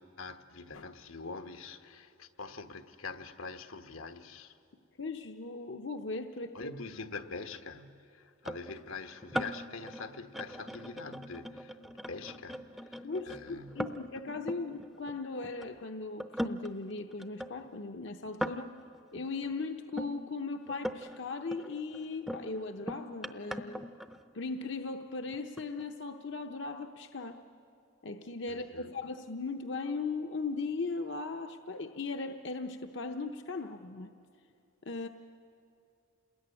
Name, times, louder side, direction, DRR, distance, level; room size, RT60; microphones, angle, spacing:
voice 1, 0.0-4.6 6.5-14.0 28.5-28.9, left 4 dB, 80° left, 1.3 m, -44 dB
voice 2, 5.0-6.7 13.0-18.7 19.1-23.9 24.3-27.4 28.0-34.1 34.8-35.1, left 3 dB, 60° left, 0.8 m, -38 dB
sound 1, 8.4-15.7 16.2-20.1 20.7-21.2 21.5-24.6 25.3-25.8, equal, ahead, 0.6 m, -40 dB
28.0 x 20.5 x 9.9 m
head